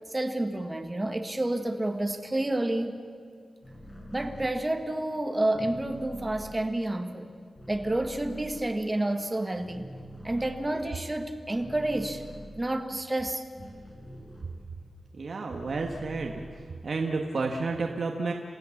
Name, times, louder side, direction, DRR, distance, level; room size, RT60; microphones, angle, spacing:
voice 1, 0.1-3.0 4.1-7.3 7.7-9.9 10.2-13.4, right 1 dB, 15° right, 6 dB, 1.5 m, -29 dB
sound 1, 3.6-9.2 9.5-15.0 15.3-17.1, equal, 20° left, 6.3 m, -46 dB
voice 2, 15.1-16.4 16.7-18.3, right 3 dB, 55° right, 2 dB, 1.5 m, -31 dB
28.5 x 15.5 x 7.2 m, 2.2 s
wide cardioid pair, 135°, 0 cm